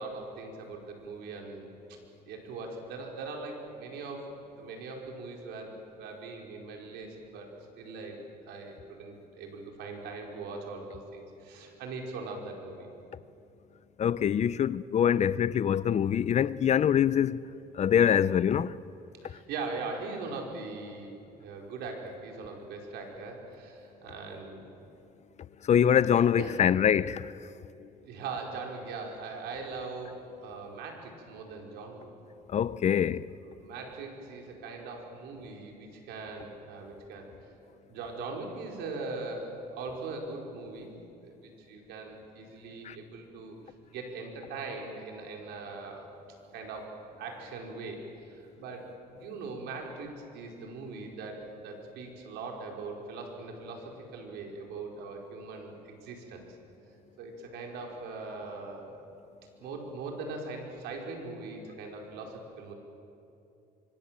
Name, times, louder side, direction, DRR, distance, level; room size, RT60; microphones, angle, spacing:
voice 1, 0.0-1.7 2.3-4.3 4.6-7.5 7.8-12.9 19.2-24.7 26.2-26.6 28.0-32.1 33.4-37.3 37.9-41.0 41.2-43.5 43.9-46.1 46.5-56.4 57.2-59.0 59.6-62.7, right 3 dB, 85° right, 4.8 m, -41 dB
voice 2, 14.0-17.4 17.7-18.8 25.6-27.3 32.5-33.3 42.8-43.0, left 9 dB, 45° left, 0.7 m, -24 dB
25.5 x 25.0 x 7.6 m
cardioid pair, 110°, 17 cm